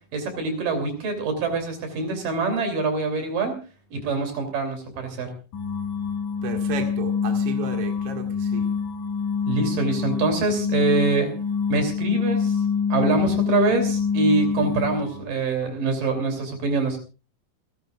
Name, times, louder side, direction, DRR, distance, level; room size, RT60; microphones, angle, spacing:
voice 1, 0.1-3.5 3.9-5.3 9.5-11.3 11.7-12.6 12.9-17.0, right 3 dB, 65° right, 5 dB, 4.7 m, -25 dB
sound 1, 5.5-15.2, left 6 dB, 55° left, 3.0 m, -25 dB
voice 2, 6.4-8.7, right 6 dB, 45° right, 3 dB, 2.5 m, -33 dB
28.5 x 12.0 x 2.4 m, 0.34 s
omnidirectional pair, 4.2 m